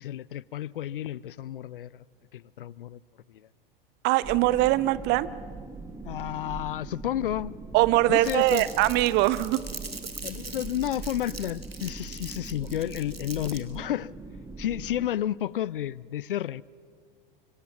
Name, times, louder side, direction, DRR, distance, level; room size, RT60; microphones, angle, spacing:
voice 1, 0.0-2.0 2.3-3.0 3.3-3.5 6.0-7.5 8.1-8.7 10.2-14.1 14.6-16.6, left 12 dB, 65° left, 0.6 m, -31 dB
voice 2, 4.0-5.3 7.7-9.6, right 17 dB, 35° right, 0.8 m, -22 dB
sound 1, 4.2-15.1, right 3 dB, 10° right, 1.3 m, -41 dB
Crumpling crinkling, 8.2-13.8, right 2 dB, 85° right, 2.0 m, -41 dB
25.5 x 24.5 x 7.3 m
figure-of-eight pair, 90°, 29 cm